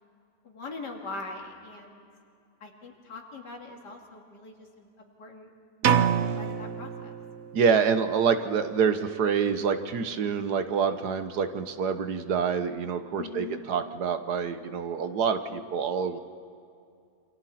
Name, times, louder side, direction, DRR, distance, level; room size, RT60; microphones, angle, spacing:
voice 1, 0.4-2.1 2.6-4.9 5.2-5.5 6.4-7.1 13.2-13.6, left 3 dB, 80° left, 1 dB, 3.0 m, -41 dB
sound 1, 5.8-7.7, right 8 dB, 55° right, 0.8 m, -26 dB
voice 2, 7.5-16.2, right 6 dB, 70° right, 9 dB, 1.6 m, -26 dB
28.0 x 26.0 x 4.3 m, 2.4 s
omnidirectional pair, 1.8 m